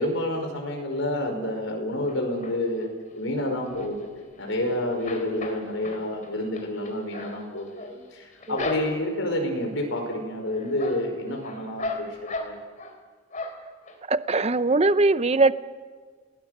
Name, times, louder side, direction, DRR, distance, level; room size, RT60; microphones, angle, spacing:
voice 1, 0.0-2.9 3.1-4.1 4.4-12.1 12.4-12.6, left 1 dB, 75° left, 3 dB, 5.4 m, -29 dB
sound 1, 2.1-2.8 3.3-4.6 4.9-9.3 9.7-10.2 10.5-13.0 13.3-14.0 14.4-14.5 14.7-14.8, left 2 dB, 40° left, 3.6 m, -37 dB
voice 2, 14.1-15.5, right 3 dB, 30° right, 13 dB, 0.7 m, -21 dB
29.0 x 19.0 x 6.7 m, 1.5 s
head